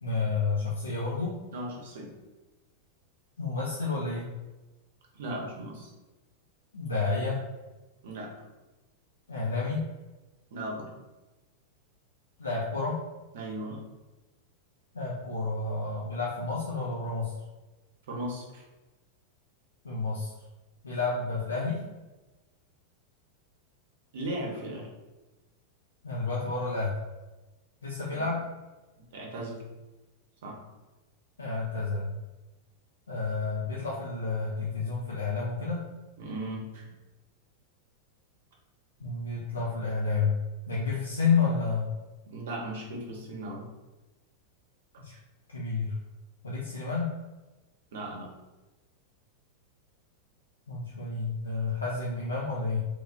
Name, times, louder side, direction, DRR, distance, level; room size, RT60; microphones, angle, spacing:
voice 1, 0.0-1.4 3.4-4.3 6.7-7.4 9.3-9.9 12.4-13.0 14.9-17.3 19.8-20.3 20.8-21.8 26.0-27.0 27.8-28.4 31.4-32.1 33.1-35.8 39.0-40.4 40.7-41.9 45.0-45.1 45.5-45.9 46.4-47.1 50.7-52.8, left 4 dB, 75° left, -5 dB, 0.4 m, -30 dB
voice 2, 1.5-2.1 5.1-5.9 8.0-8.3 10.5-10.9 13.3-13.8 18.1-18.6 24.1-24.9 28.1-28.3 29.1-29.6 30.4-30.6 36.2-36.9 42.2-43.7 47.9-48.3, right 1 dB, 60° right, -1 dB, 0.7 m, -37 dB
3.0 x 2.3 x 2.2 m, 1.1 s
figure-of-eight pair, 90°, 0 cm